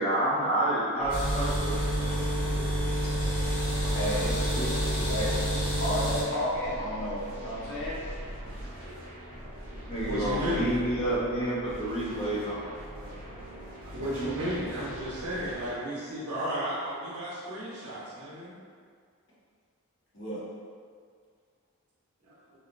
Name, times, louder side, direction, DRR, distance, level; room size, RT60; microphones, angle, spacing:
voice 1, 0.0-2.1 3.4-3.8 4.2-5.3 9.7-13.3 13.5-13.6, right 1 dB, 25° left, -9 dB, 0.7 m, -30 dB
sound 1, 1.0-15.7, equal, 40° right, 0.5 m, -42 dB
sound 2, 1.1-6.2, right 1 dB, 70° left, 1.1 m, -28 dB
voice 2, 2.3-2.8 3.1-3.3 3.6-3.7 8.8-8.9 10.1-10.7 13.9-18.5 22.2-22.3, equal, 80° right, -8 dB, 0.9 m, -34 dB
voice 3, 3.9-4.3 5.1-5.4 5.8-8.0 13.9-14.4 20.1-20.4, equal, 55° left, -9 dB, 0.8 m, -32 dB
2.9 x 2.3 x 2.5 m, 2.1 s
head